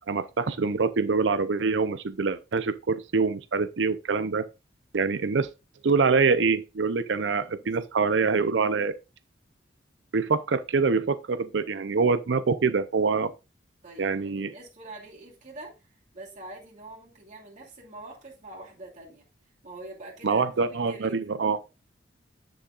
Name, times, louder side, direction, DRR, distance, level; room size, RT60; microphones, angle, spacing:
voice 1, 0.1-4.4 4.9-5.5 5.8-8.9 10.1-13.3 14.0-14.5 20.2-21.6, right 4 dB, 80° right, 0.6 m, -25 dB
voice 2, 7.1-7.7 13.8-15.8 16.1-19.3 19.6-21.6, right 2 dB, 40° right, 2.6 m, -45 dB
9.8 x 6.2 x 2.4 m
head